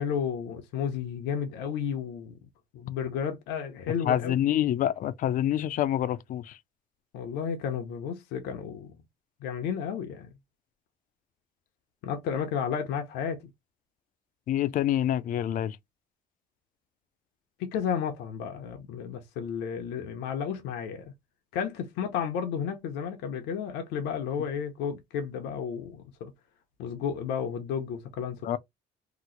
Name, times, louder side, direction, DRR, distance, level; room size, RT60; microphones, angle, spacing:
voice 1, 0.0-2.3 2.7-4.3 7.1-8.9 9.4-10.3 12.0-13.4 17.6-21.1 21.5-26.3 26.8-28.6, left 7 dB, 90° left, 0.7 m, -32 dB
voice 2, 4.0-6.6 14.5-15.8 28.4-28.6, left 11 dB, 55° left, 0.4 m, -27 dB
2.9 x 2.0 x 3.7 m
cardioid pair, 110°, 17 cm